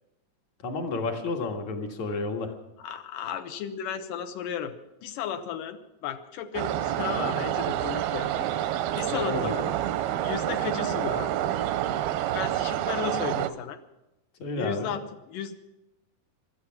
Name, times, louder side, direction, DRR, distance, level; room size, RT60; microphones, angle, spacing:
voice 1, 0.6-2.5 9.1-9.5 14.4-14.9, left 3 dB, 55° left, 3 dB, 2.8 m, -31 dB
voice 2, 2.8-4.7 5.0-8.5 8.9-9.7 10.2-11.4 12.3-13.8 14.6-15.5, left 8 dB, 70° left, 9 dB, 2.4 m, -34 dB
sound 1, 6.5-13.5, right 12 dB, 85° right, 2.7 m, -28 dB
18.0 x 13.0 x 6.0 m, 0.94 s
omnidirectional pair, 4.2 m